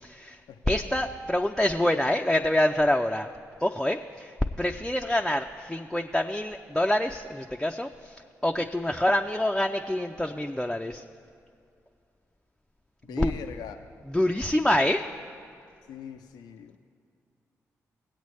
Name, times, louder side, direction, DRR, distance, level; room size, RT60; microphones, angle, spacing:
voice 1, 0.0-0.4 0.7-3.3 3.6-8.1 8.4-11.0 13.1-13.4 14.1-15.0, left 1 dB, 5° left, 3 dB, 0.4 m, -26 dB
voice 2, 13.0-13.8 15.9-16.8, left 8 dB, 75° left, 8 dB, 0.4 m, -41 dB
17.5 x 8.0 x 3.2 m, 2.4 s
hypercardioid pair, 40°, 7 cm